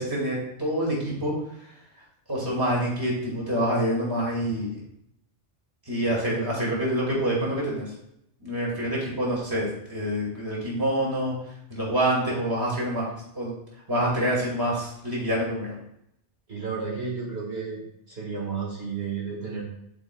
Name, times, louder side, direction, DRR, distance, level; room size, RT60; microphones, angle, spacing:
voice 1, 0.0-1.3 2.3-4.7 5.9-7.9 8.4-11.3 11.7-13.1 13.3-13.5 13.9-15.7, right 1 dB, 20° right, -5 dB, 2.2 m, -26 dB
voice 2, 16.5-19.6, right 5 dB, 60° right, -5 dB, 2.0 m, -32 dB
10.5 x 4.8 x 2.3 m, 0.77 s
omnidirectional pair, 1.2 m